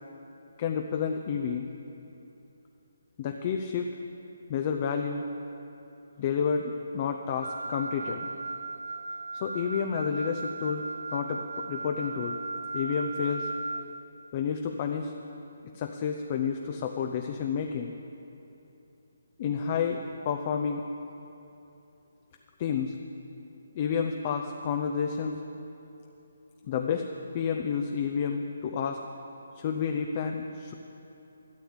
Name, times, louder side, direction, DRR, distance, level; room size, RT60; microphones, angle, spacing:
voice 1, 0.6-1.7 3.2-3.9 4.5-5.2 6.2-8.3 9.3-10.8 11.1-12.4 12.7-13.5 14.3-15.1 15.7-17.9 19.4-20.0 20.2-20.8 22.6-22.9 23.7-25.4 26.7-27.1 27.3-29.0 29.6-30.7, left 6 dB, 35° left, 4 dB, 0.6 m, -30 dB
Wind instrument woodwind instrument, 7.4-13.9, right 3 dB, 80° right, 0.6 m, -36 dB
12.5 x 7.1 x 8.7 m, 2.9 s
figure-of-eight pair, 150°, 0 cm